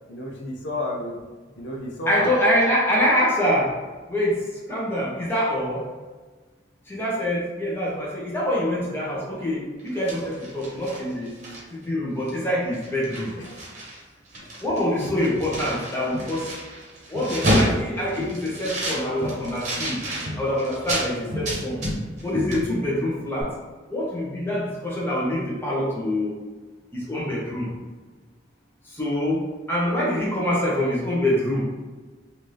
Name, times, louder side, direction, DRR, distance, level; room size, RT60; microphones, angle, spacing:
voice 1, 0.1-1.2 1.6-2.4 13.4-13.5 21.2-21.4, left 1 dB, 75° left, -1 dB, 0.6 m, -31 dB
voice 2, 2.1-3.7 4.1-5.8 6.9-11.3 11.7-13.3 14.6-16.5 17.1-20.0 20.4-21.8 22.2-23.5 23.9-26.4 26.9-27.7 28.8-31.6, left 1 dB, 10° left, -6 dB, 0.9 m, -25 dB
sound 1, 9.8-11.9 12.3-12.4 12.7-14.0 14.2-21.1 21.4-22.3 22.5-22.6, equal, 40° right, 1.0 m, -29 dB
Crowd, 15.0-16.8 17.2-22.1 22.3-23.0 23.4-23.5, left 1 dB, 65° right, 0.8 m, -38 dB
3.5 x 2.6 x 3.2 m, 1.3 s
head